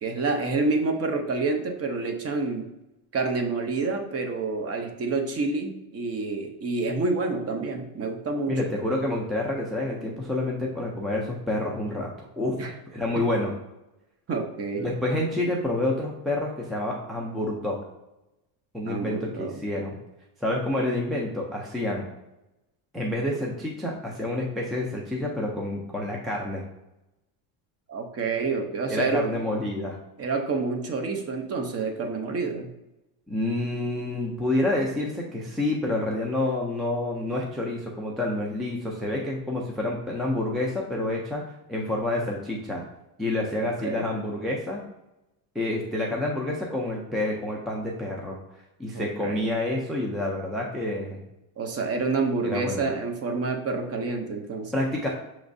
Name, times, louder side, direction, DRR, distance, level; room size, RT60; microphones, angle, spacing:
voice 1, 0.0-2.7 3.1-8.6 12.6-12.7 13.1-13.2 14.3-14.9 18.8-19.6 27.9-29.3 30.2-32.7 43.6-44.1 48.9-49.4 51.6-54.7, right 3 dB, 30° right, 4 dB, 0.7 m, -28 dB
voice 2, 8.5-12.6 12.9-13.5 14.8-17.8 18.7-19.9 20.4-22.1 22.9-26.6 28.9-30.0 33.3-41.4 41.7-42.8 43.2-44.8 45.5-48.4 48.8-51.2 52.4-52.9 54.7-55.1, left 1 dB, ahead, -2 dB, 0.4 m, -28 dB
6.1 x 3.1 x 2.6 m, 0.96 s
supercardioid pair, 110°, 48 cm